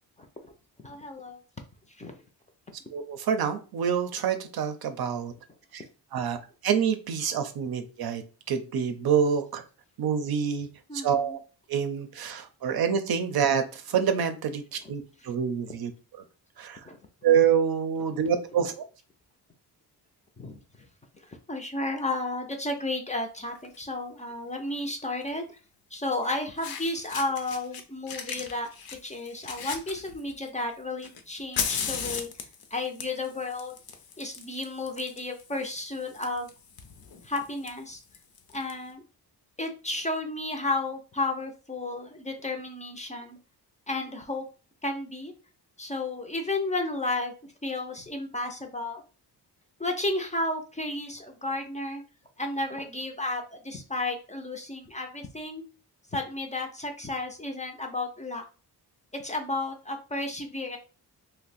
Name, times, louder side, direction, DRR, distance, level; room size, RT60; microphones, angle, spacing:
voice 1, 0.8-1.4 2.0-2.2 10.9-11.4 16.8-17.0 20.4-20.6 21.5-25.6 25.9-28.7 29.0-33.7 34.2-36.5 37.2-38.0 38.5-39.0 39.6-43.4 43.9-44.4 44.8-45.3 45.8-49.0 49.8-52.0 52.4-55.6 56.1-58.4 59.1-60.8, left 2 dB, 20° left, 4 dB, 0.5 m, -32 dB
voice 2, 2.9-5.3 5.7-5.8 6.1-6.4 6.6-9.6 10.0-10.7 11.0-11.4 11.7-14.6 14.9-15.9 16.6-16.8 17.2-18.9, right 7 dB, 65° right, 8 dB, 0.6 m, -26 dB
Fire, 23.5-23.8 25.2-25.3 26.2-26.3 26.6-27.8 28.1-30.5 31.0-38.7, left 6 dB, 65° left, 0.7 m, -37 dB
2.6 x 2.1 x 4.0 m, 0.34 s
cardioid pair, 110°, 40 cm